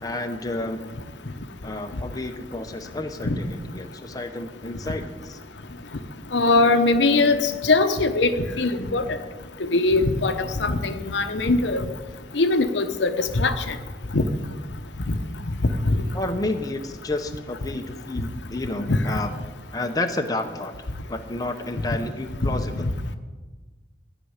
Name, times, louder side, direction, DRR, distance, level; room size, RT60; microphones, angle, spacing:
voice 1, 0.0-0.9 1.6-5.0 5.3-5.4 16.1-19.3 19.7-20.7 21.1-22.9, left 2 dB, 20° left, 5 dB, 0.8 m, -30 dB
voice 2, 6.3-9.0 9.6-11.9 12.3-13.7 14.1-14.2 15.1-15.2 15.8-16.0 18.9-19.0 22.4-22.5, left 3 dB, 85° left, 8 dB, 0.9 m, -21 dB
13.5 x 6.0 x 9.7 m, 1.3 s
head